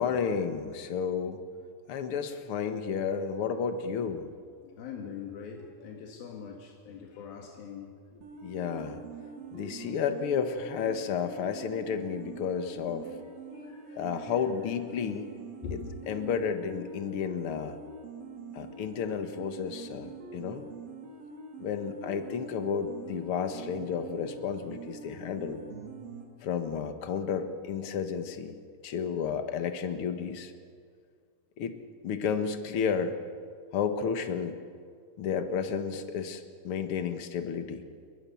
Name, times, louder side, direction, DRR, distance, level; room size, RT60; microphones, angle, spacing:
voice 1, 0.0-1.4 1.9-4.3 8.4-9.0 9.5-13.1 14.0-15.3 15.7-15.8 16.1-17.8 18.5-20.6 21.6-25.6 26.4-30.5 31.6-31.7 32.0-33.2 33.7-34.6 35.2-37.8, left 6 dB, 50° left, 7 dB, 1.8 m, -32 dB
voice 2, 4.6-8.0 13.5-14.1 15.5-15.8, left 7 dB, 85° left, 1 dB, 3.7 m, -43 dB
sound 1, 8.2-26.3, right 4 dB, 80° right, 4.3 m, -45 dB
29.5 x 22.5 x 7.2 m, 2.1 s
omnidirectional pair, 4.1 m